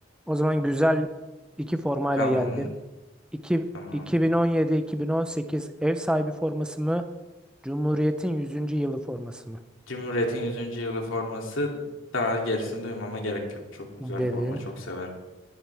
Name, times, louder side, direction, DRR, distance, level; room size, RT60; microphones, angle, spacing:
voice 1, 0.3-1.1 1.6-2.7 3.4-3.7 3.9-7.1 7.6-9.6 14.0-14.6, equal, 5° right, 8 dB, 0.7 m, -26 dB
voice 2, 2.2-2.7 3.7-4.0 9.9-11.8 12.1-13.4 14.0-14.6 14.9-15.1, left 1 dB, 80° left, 0 dB, 2.9 m, -30 dB
19.0 x 10.5 x 3.5 m, 1.1 s
head